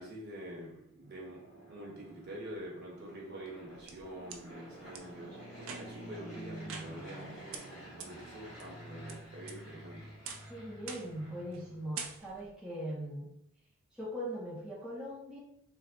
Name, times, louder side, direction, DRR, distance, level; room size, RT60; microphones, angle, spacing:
voice 1, 0.0-7.5 8.0-10.2, right 1 dB, 45° right, -2 dB, 0.9 m, -46 dB
Fixed-wing aircraft airplane, 1.0-12.1, right 1 dB, 50° left, 1.4 m, -49 dB
sound 1, 3.5-4.4 4.9-5.0 5.6-6.1 6.7-7.2 7.5-7.6 8.0-8.1 8.6-9.1 9.5-9.9 10.3-10.5 10.9-11.2 11.5-11.7 12.0-12.5, right 6 dB, 65° right, 0.4 m, -45 dB
voice 2, 10.5-13.3 13.9-15.4, equal, 5° right, -7 dB, 0.5 m, -40 dB
3.4 x 2.0 x 3.5 m, 0.73 s
head